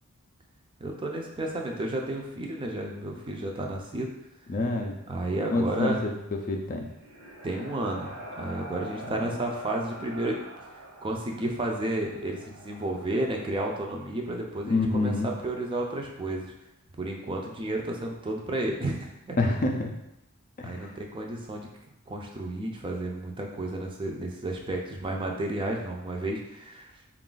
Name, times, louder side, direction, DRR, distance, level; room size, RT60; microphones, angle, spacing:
voice 1, 0.8-4.1 5.1-6.0 7.4-10.4 11.0-15.1 15.4-16.5 17.0-19.4 20.6-21.7 22.1-27.1, right 1 dB, 25° right, 1 dB, 0.4 m, -32 dB
voice 2, 4.5-5.0 5.5-6.1 6.4-6.9 9.1-9.4 14.6-15.3 19.4-20.0 20.6-20.9, left 2 dB, 40° left, 3 dB, 0.4 m, -27 dB
sound 1, 6.6-14.4, right 1 dB, 75° right, 1.0 m, -45 dB
4.0 x 2.4 x 3.8 m, 0.86 s
head